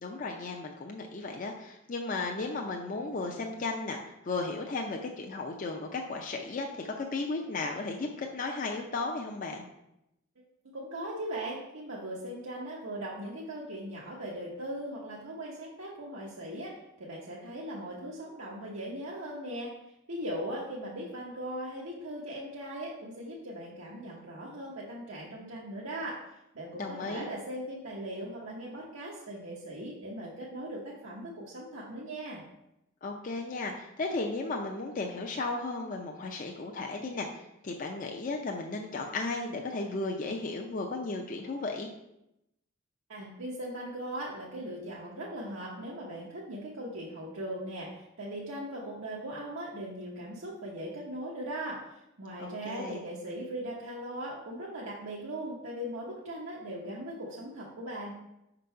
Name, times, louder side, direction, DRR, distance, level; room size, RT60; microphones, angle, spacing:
voice 1, 0.0-9.7 26.8-27.3 33.0-41.9 52.4-53.0, left 3 dB, 40° left, 1 dB, 0.5 m, -35 dB
voice 2, 10.7-19.7 20.1-26.2 26.5-32.4 43.1-58.1, right 1 dB, 90° right, -4 dB, 1.0 m, -39 dB
5.4 x 3.9 x 5.5 m, 0.87 s
head